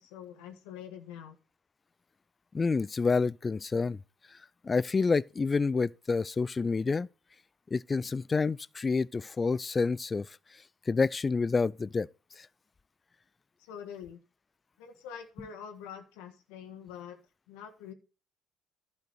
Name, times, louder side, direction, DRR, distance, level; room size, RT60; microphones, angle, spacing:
voice 1, 0.0-1.4 13.6-14.2 14.8-17.2 17.5-17.9, left 8 dB, 80° left, 1.7 m, -45 dB
voice 2, 2.5-4.0 4.6-7.1 7.7-10.3 10.9-12.1 12.4-12.5, left 4 dB, 30° left, 0.4 m, -28 dB
12.0 x 6.4 x 4.2 m
hypercardioid pair, 65°, 0 cm